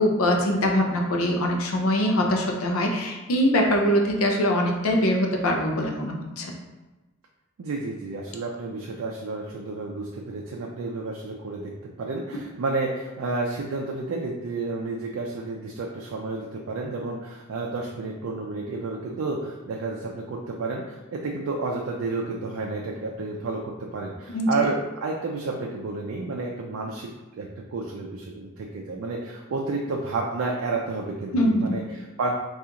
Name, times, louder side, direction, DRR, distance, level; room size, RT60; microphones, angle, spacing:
voice 1, 0.0-6.5 24.3-24.5 31.3-31.9, equal, 75° left, 1 dB, 0.5 m, -23 dB
voice 2, 7.6-11.7 12.0-27.1 27.4-32.3, right 3 dB, 75° right, 0 dB, 0.4 m, -31 dB
3.6 x 2.4 x 2.8 m, 1.1 s
head